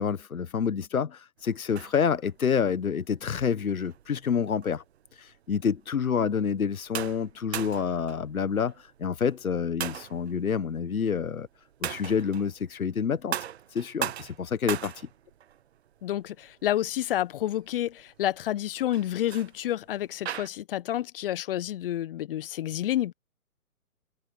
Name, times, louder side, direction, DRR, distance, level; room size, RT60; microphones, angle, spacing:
voice 1, 0.0-4.8 5.2-11.5 11.8-13.4 13.7-14.9, left 7 dB, 70° left, 1.4 m, -28 dB
sound 1, 1.4-20.5, right 10 dB, 50° right, 0.9 m, -40 dB
voice 2, 16.0-23.1, left 12 dB, 40° left, 1.2 m, -29 dB
figure-of-eight pair, 130°, 43 cm